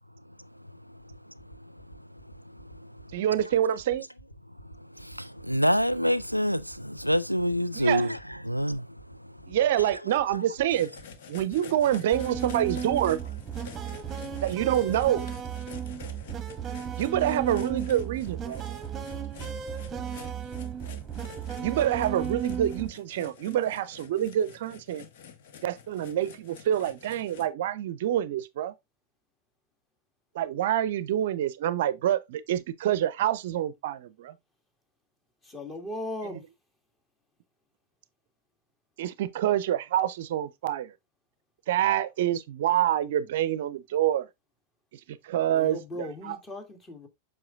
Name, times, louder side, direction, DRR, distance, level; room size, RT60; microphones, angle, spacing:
voice 1, 0.3-3.2 4.6-9.9 10.3-10.4, equal, 90° left, 0.4 m, -29 dB
sound 1, 1.0-18.4, right 1 dB, 70° left, 3.1 m, -50 dB
voice 2, 3.1-4.1 7.7-8.1 9.5-10.9 11.3-13.2 14.4-15.3 17.0-18.7 21.6-25.0 25.6-28.7 30.3-34.3 39.0-40.9 41.7-44.3 45.1-46.4, right 11 dB, 55° right, 0.6 m, -27 dB
sound 2, 10.7-27.5, left 7 dB, 55° left, 1.2 m, -48 dB
sound 3, 12.1-22.9, right 8 dB, 25° right, 1.1 m, -35 dB
voice 3, 35.4-36.4 45.4-47.1, left 1 dB, 20° left, 2.2 m, -38 dB
7.7 x 6.2 x 2.5 m
figure-of-eight pair, 90°, 0 cm